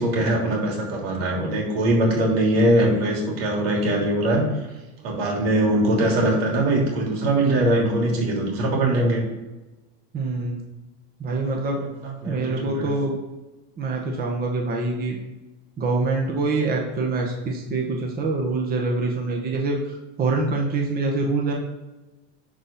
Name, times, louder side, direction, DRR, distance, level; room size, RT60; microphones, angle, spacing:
voice 1, 0.0-4.4 5.0-9.2 12.0-12.9, right 1 dB, 85° right, -1 dB, 3.2 m, -21 dB
voice 2, 10.1-10.6 11.2-11.8 12.2-13.2 13.8-15.2 15.8-19.8 20.2-21.5, right 3 dB, 30° right, 0 dB, 1.5 m, -25 dB
10.5 x 4.4 x 5.4 m, 1.1 s
supercardioid pair, 135°, 30 cm